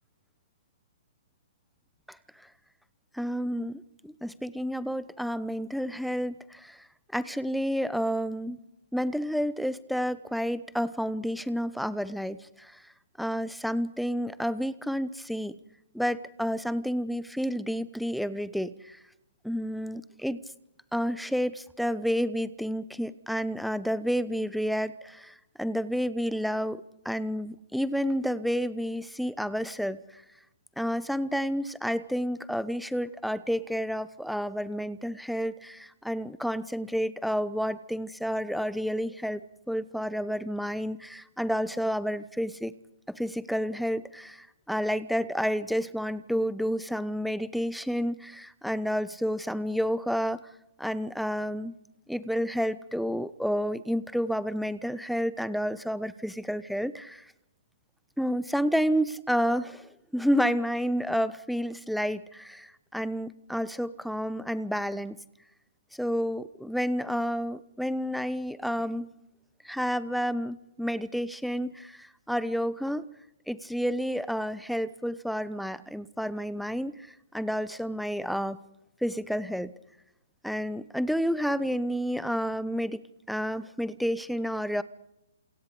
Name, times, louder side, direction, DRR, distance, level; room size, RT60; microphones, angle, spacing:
voice 1, 3.1-6.9 7.1-8.6 8.9-12.8 13.2-15.6 15.9-19.0 19.4-20.4 20.9-30.2 30.8-39.4 39.7-42.7 43.2-50.5 50.8-51.7 52.1-57.3 58.2-65.2 66.0-69.1 69.6-73.0 73.5-78.6 79.0-79.7 80.4-83.0 83.3-84.8, equal, ahead, 16 dB, 1.0 m, -30 dB
30.0 x 28.0 x 5.1 m, 0.86 s
figure-of-eight pair, 125°, 0 cm